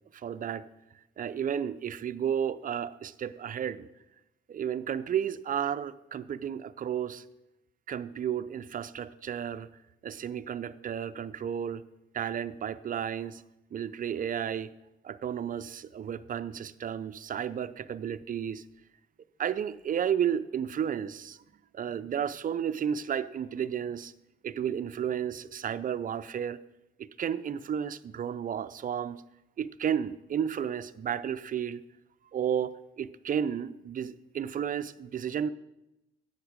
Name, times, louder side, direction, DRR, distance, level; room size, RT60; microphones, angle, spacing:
voice 1, 0.1-0.7 1.2-3.9 4.5-7.2 7.9-9.7 10.0-11.8 12.1-13.4 13.7-14.7 15.0-18.6 19.4-21.4 21.7-24.1 24.4-26.6 27.0-29.2 29.6-31.8 32.3-35.5, right 8 dB, 45° right, 13 dB, 0.5 m, -32 dB
10.5 x 8.8 x 5.1 m, 0.93 s
cardioid pair, 90°, 20 cm